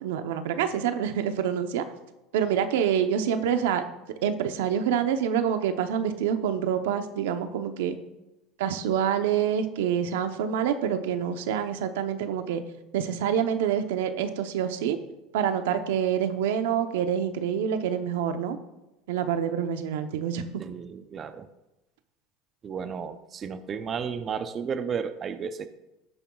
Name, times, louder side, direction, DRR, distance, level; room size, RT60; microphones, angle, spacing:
voice 1, 0.0-1.8 2.3-3.8 4.2-8.0 8.6-12.6 12.9-15.0 15.3-18.6 19.1-20.4, right 8 dB, 85° right, 8 dB, 0.8 m, -26 dB
voice 2, 20.6-21.5 22.6-25.7, right 6 dB, 35° right, 10 dB, 0.6 m, -33 dB
14.5 x 8.8 x 2.4 m, 0.95 s
supercardioid pair, 115°, 0 cm